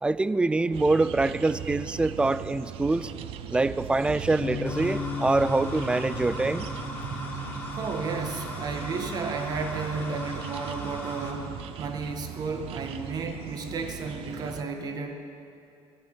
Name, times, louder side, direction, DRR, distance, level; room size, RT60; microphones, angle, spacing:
voice 1, 0.0-3.1 3.5-6.7, right 2 dB, 10° right, 16 dB, 0.3 m, -25 dB
sound 1, 0.7-14.6, right 10 dB, 70° right, 0.6 m, -39 dB
Bass guitar, 4.4-10.7, left 7 dB, 55° left, 0.9 m, -38 dB
sound 2, 4.7-11.3, left 1 dB, 20° left, 2.5 m, -40 dB
voice 2, 7.7-15.1, right 4 dB, 40° right, 5 dB, 1.4 m, -33 dB
13.0 x 7.8 x 9.9 m, 2.6 s
cardioid pair, 145°, 10 cm